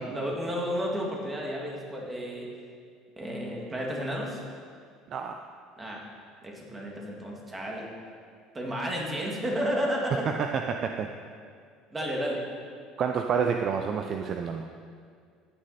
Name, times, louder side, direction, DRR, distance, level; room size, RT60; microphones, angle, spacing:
voice 1, 0.0-2.5 3.2-4.4 5.8-6.0 6.4-7.9 8.5-10.2 11.9-12.4, equal, 15° right, -2 dB, 2.3 m, -32 dB
voice 2, 5.1-5.4 10.4-11.1 13.0-14.7, right 6 dB, 40° right, 5 dB, 0.6 m, -29 dB
15.0 x 9.7 x 4.3 m, 2.1 s
cardioid pair, 140°, 0 cm